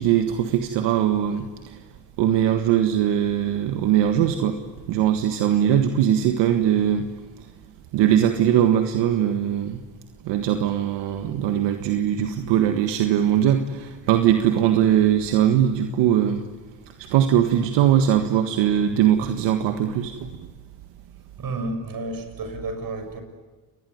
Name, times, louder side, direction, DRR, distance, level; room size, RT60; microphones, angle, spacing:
voice 1, 0.0-1.8 2.2-4.6 4.9-7.1 7.9-9.8 10.2-16.4 17.1-20.3, right 10 dB, 80° right, 7 dB, 1.7 m, -21 dB
voice 2, 21.4-23.2, right 2 dB, 55° right, 7 dB, 6.7 m, -31 dB
29.0 x 20.5 x 9.4 m, 1.4 s
supercardioid pair, 65°, 42 cm